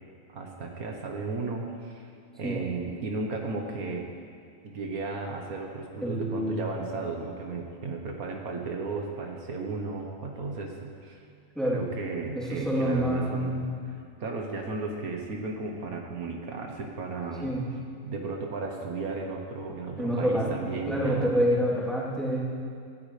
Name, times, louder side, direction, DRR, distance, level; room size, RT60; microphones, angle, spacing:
voice 1, 0.3-4.1 4.6-11.2 11.7-17.5 18.0-21.4, right 3 dB, 70° right, 1 dB, 1.6 m, -35 dB
voice 2, 6.0-6.6 11.5-11.8 12.3-13.7 17.4-17.7 20.0-22.4, equal, ahead, -8 dB, 3.1 m, -27 dB
18.0 x 14.5 x 3.3 m, 2.3 s
omnidirectional pair, 1.6 m